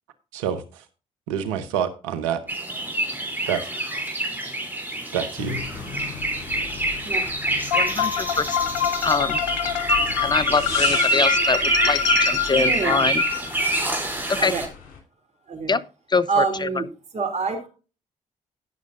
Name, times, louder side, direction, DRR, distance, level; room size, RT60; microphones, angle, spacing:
voice 1, 0.3-0.8 1.3-2.4 3.5-3.7 5.1-5.6, right 8 dB, 85° right, 1.0 m, -27 dB
sound 1, 2.5-14.7, right 2 dB, 10° right, 3.4 m, -26 dB
sound 2, 5.4-15.0, left 7 dB, 60° left, 3.5 m, -40 dB
sound 3, 7.7-13.8, left 10 dB, 85° left, 0.8 m, -26 dB
voice 2, 7.7-8.6 9.0-9.4 10.2-13.2 14.4-14.5 15.7-15.8 16.1-16.9, left 4 dB, 25° left, 0.7 m, -24 dB
voice 3, 12.5-13.0 14.4-14.6 15.5-15.7 16.3-16.8 17.1-17.7, right 5 dB, 45° right, 2.8 m, -26 dB
18.0 x 6.4 x 2.6 m
hypercardioid pair, 45°, 16 cm